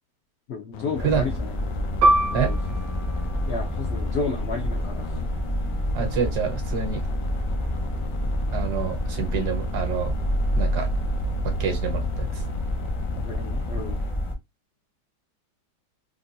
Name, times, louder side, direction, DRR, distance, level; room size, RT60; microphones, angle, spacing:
voice 1, 0.5-1.5 2.3-2.6 3.5-5.1 13.2-14.0, left 4 dB, 75° left, 0.5 m, -32 dB
sound 1, 0.7-14.1, left 1 dB, 90° left, 1.2 m, -37 dB
sound 2, 0.9-14.3, left 1 dB, 30° left, 0.6 m, -28 dB
Piano, 2.0-7.1 7.4-7.6 8.3-8.7, right 2 dB, 90° right, 1.3 m, -27 dB
voice 2, 5.9-7.0 8.5-10.2 10.5-10.9 11.4-12.4, right 7 dB, 70° right, 1.4 m, -27 dB
3.7 x 2.3 x 2.6 m
omnidirectional pair, 1.8 m